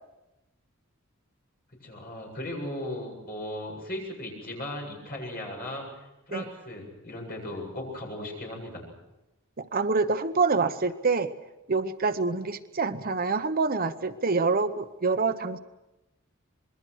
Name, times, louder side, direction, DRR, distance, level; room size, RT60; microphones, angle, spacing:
voice 1, 1.8-8.8, left 1 dB, 45° left, 1 dB, 7.9 m, -37 dB
voice 2, 9.6-11.3 11.7-15.6, right 4 dB, 45° right, 10 dB, 0.9 m, -26 dB
26.5 x 22.0 x 6.3 m, 0.97 s
head